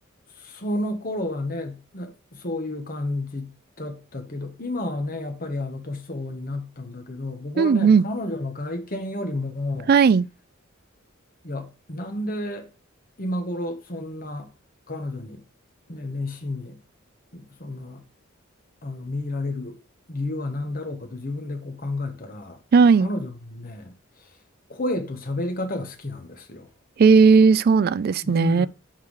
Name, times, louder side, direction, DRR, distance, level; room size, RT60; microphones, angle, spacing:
voice 1, 0.3-9.9 11.4-12.7 13.2-14.5 14.9-15.4 15.9-16.8 17.3-18.0 18.8-19.8 20.1-22.6 23.0-24.3 24.7-26.7 28.2-28.7, left 1 dB, 45° left, 1.4 m, -31 dB
voice 2, 7.6-8.0 9.9-10.3 22.7-23.1 27.0-28.7, right 5 dB, 45° right, 0.3 m, -16 dB
5.9 x 4.6 x 4.7 m
head